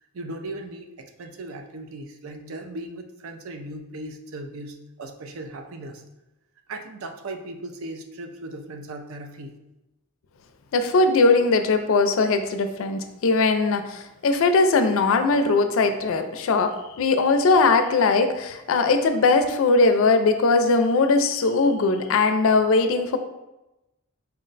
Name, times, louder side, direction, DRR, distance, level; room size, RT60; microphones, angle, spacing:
voice 1, 0.1-6.0 6.7-9.6, right 2 dB, 70° right, 5 dB, 0.4 m, -37 dB
voice 2, 10.7-23.2, left 3 dB, 65° left, 8 dB, 0.4 m, -20 dB
4.3 x 2.1 x 3.8 m, 0.97 s
head